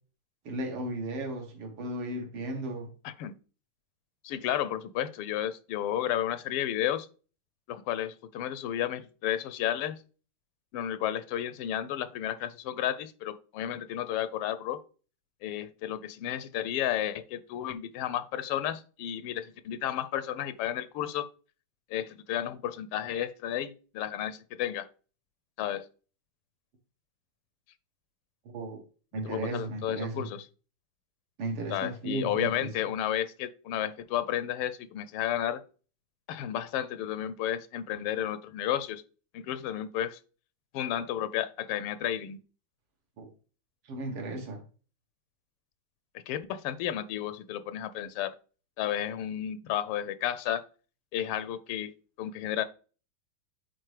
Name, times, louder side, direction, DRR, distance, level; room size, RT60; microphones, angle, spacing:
voice 1, 0.5-2.9 28.5-28.8 29.1-30.3 31.4-32.7 43.2-43.3 43.9-44.6, right 2 dB, 90° right, 3 dB, 2.3 m, -35 dB
voice 2, 4.2-7.1 7.7-10.0 10.7-14.8 15.4-21.3 21.9-24.9 25.6-25.9 29.2-30.4 31.7-35.6 36.3-39.0 39.3-40.2 40.7-42.4 46.3-48.3 48.8-50.6 51.1-51.9 52.2-52.6, left 11 dB, 85° left, 13 dB, 1.5 m, -32 dB
8.9 x 4.0 x 3.3 m, 0.37 s
omnidirectional pair, 2.4 m